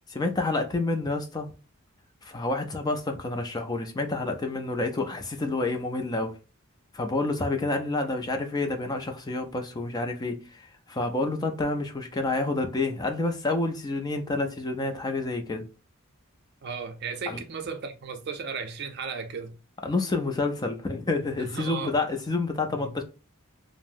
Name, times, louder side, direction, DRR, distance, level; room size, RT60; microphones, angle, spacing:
voice 1, 0.1-1.5 2.2-6.4 6.9-15.6 17.3-17.4 19.8-23.0, left 2 dB, 20° left, 0.4 m, -29 dB
voice 2, 16.6-19.6 21.4-21.9 22.7-22.9, right 5 dB, 50° right, 0.5 m, -35 dB
2.6 x 2.0 x 3.5 m
head